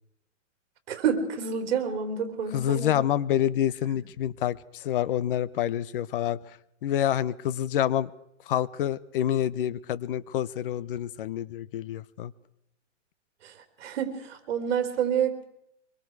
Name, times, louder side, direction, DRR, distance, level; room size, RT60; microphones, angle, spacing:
voice 1, 0.9-3.0 13.4-13.5 13.8-15.5, right 7 dB, 55° right, 7 dB, 3.8 m, -28 dB
voice 2, 2.5-6.4 6.8-8.1 8.5-12.3, left 11 dB, 45° left, 17 dB, 0.9 m, -27 dB
24.5 x 23.0 x 4.8 m, 0.78 s
hypercardioid pair, 160°, 37 cm